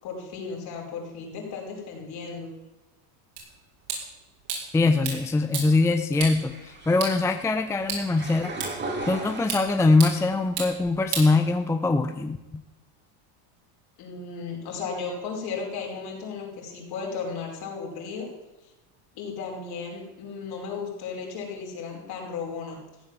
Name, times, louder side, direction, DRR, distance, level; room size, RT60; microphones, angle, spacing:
voice 1, 0.0-2.5 14.0-18.3 18.6-18.7 19.2-22.8, left 5 dB, 55° left, -1 dB, 5.6 m, -35 dB
sound 1, 3.4-12.0, right 5 dB, 65° right, 5.7 m, -37 dB
voice 2, 4.7-8.7 9.1-12.6, left 3 dB, 5° left, 8 dB, 0.5 m, -23 dB
sound 2, 6.4-10.1 10.5-11.2, right 2 dB, 25° right, 3.0 m, -37 dB
15.5 x 8.7 x 7.4 m, 1.0 s
supercardioid pair, 125°, 46 cm